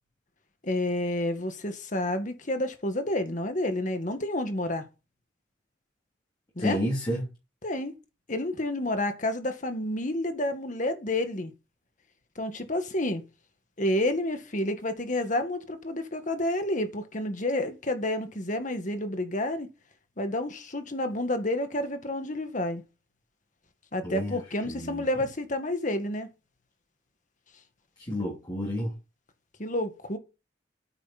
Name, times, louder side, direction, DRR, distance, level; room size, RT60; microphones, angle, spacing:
voice 1, 0.6-4.8 6.6-6.8 7.6-7.9 8.3-11.5 12.4-13.2 13.8-19.7 20.2-22.8 23.9-26.3 29.6-30.2, left 1 dB, 45° left, 1.8 m, -29 dB
voice 2, 6.6-7.2 24.0-24.4 24.6-25.0 28.0-28.9, equal, 25° left, 3.0 m, -30 dB
9.3 x 9.2 x 4.3 m
head